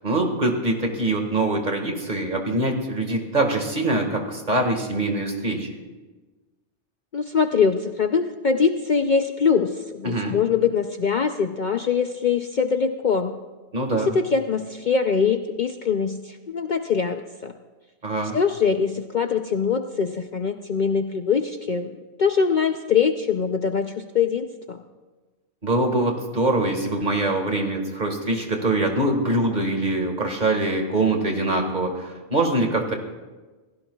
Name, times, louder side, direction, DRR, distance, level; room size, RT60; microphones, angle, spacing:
voice 1, 0.0-5.7 10.0-10.4 13.7-14.1 18.0-18.4 25.6-32.9, right 2 dB, 40° right, 3 dB, 1.9 m, -23 dB
voice 2, 7.1-13.4 13.9-17.5 18.3-24.8, left 6 dB, 50° left, 6 dB, 0.6 m, -23 dB
27.0 x 16.5 x 2.3 m, 1.3 s
omnidirectional pair, 1.2 m